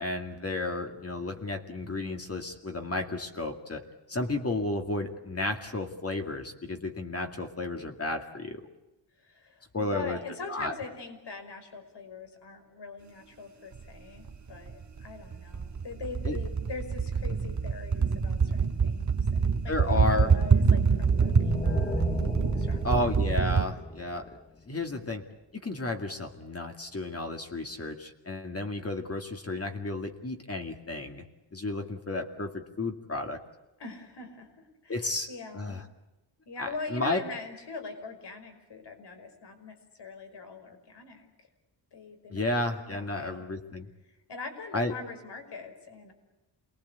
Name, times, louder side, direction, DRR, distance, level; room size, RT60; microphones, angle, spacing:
voice 1, 0.0-8.7 9.7-10.2 10.5-10.7 16.2-16.4 19.7-20.3 22.8-24.3 24.7-25.2 25.6-31.2 31.5-33.4 34.9-35.3 35.5-35.8 36.6-37.2 42.3-43.9 44.7-44.9, left 2 dB, 35° left, 4 dB, 2.3 m, -32 dB
voice 2, 9.2-22.0 22.5-23.2 33.8-35.8 36.5-41.5 41.9-42.4 42.8-43.4 44.1-46.1, left 4 dB, 65° left, 6 dB, 5.4 m, -42 dB
sound 1, 13.8-13.9 14.2-23.6, right 5 dB, 40° right, 1.5 m, -26 dB
sound 2, 20.4-24.8, left 3 dB, 15° left, 0.8 m, -37 dB
28.0 x 21.0 x 8.3 m, 1.0 s
wide cardioid pair, 140°, 44 cm